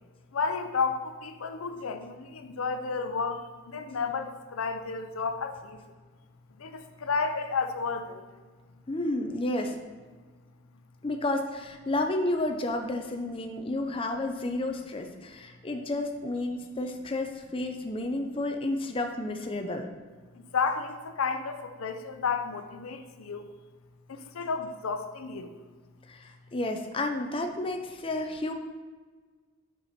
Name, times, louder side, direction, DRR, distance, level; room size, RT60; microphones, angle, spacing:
voice 1, 0.3-5.8 6.6-8.3 20.4-23.5 24.1-25.5, left 5 dB, 90° left, 8 dB, 0.5 m, -32 dB
voice 2, 8.9-9.7 11.0-19.8 26.1-28.5, left 2 dB, 25° left, 4 dB, 0.5 m, -31 dB
5.9 x 5.8 x 4.2 m, 1.4 s
head